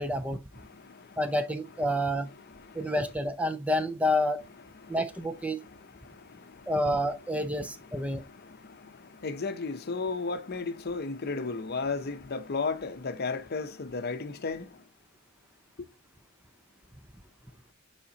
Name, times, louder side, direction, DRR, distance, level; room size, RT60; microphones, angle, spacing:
voice 1, 0.0-0.4 1.2-2.3 2.7-4.4 4.9-5.6 6.7-8.2, left 1 dB, 5° right, 0.5 m, -29 dB
voice 2, 0.5-1.2 2.3-2.8 4.7-5.0 5.6-6.7 7.6-14.8 15.8-15.9, left 4 dB, 50° left, 0.7 m, -35 dB
7.0 x 5.0 x 2.8 m
head